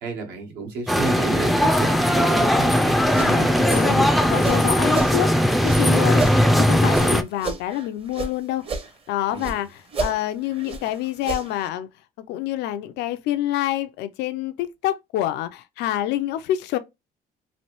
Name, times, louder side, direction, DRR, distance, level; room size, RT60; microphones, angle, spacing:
voice 1, 0.0-2.8 9.3-9.6, right 4 dB, 80° right, 1.2 m, -32 dB
sound 1, 0.9-7.2, equal, ahead, 0.3 m, -19 dB
voice 2, 3.1-5.3 5.6-6.2 6.6-8.7 9.1-11.9 12.3-16.8, left 13 dB, 85° left, 0.4 m, -27 dB
sound 2, 3.1-5.2 5.6-8.3 8.6-9.6 9.9-11.7, right 4 dB, 35° right, 0.7 m, -32 dB
3.1 x 2.6 x 2.9 m
cardioid pair, 110°, 17 cm